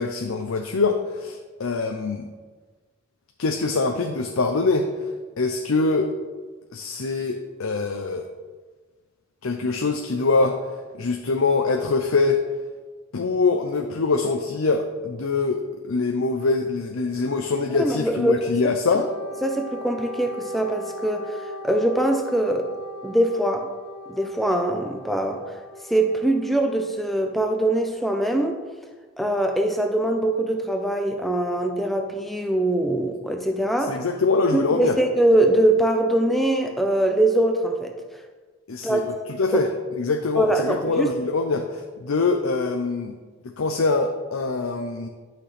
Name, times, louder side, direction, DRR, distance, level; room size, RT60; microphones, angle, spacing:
voice 1, 0.0-2.3 3.4-4.9 5.4-6.1 6.7-8.2 9.4-10.6 10.9-12.4 13.1-19.1 33.9-35.0 38.7-43.1 43.6-45.1, left 3 dB, 85° left, 4 dB, 0.6 m, -24 dB
voice 2, 17.8-18.4 19.4-21.3 21.6-22.7 23.0-23.7 24.1-25.4 25.9-28.6 29.2-34.0 34.5-37.9 38.8-39.1 40.4-41.1, right 1 dB, ahead, 4 dB, 0.6 m, -22 dB
Wind instrument woodwind instrument, 18.9-26.6, equal, 65° left, 1.6 m, -39 dB
11.0 x 5.9 x 3.3 m, 1.4 s
head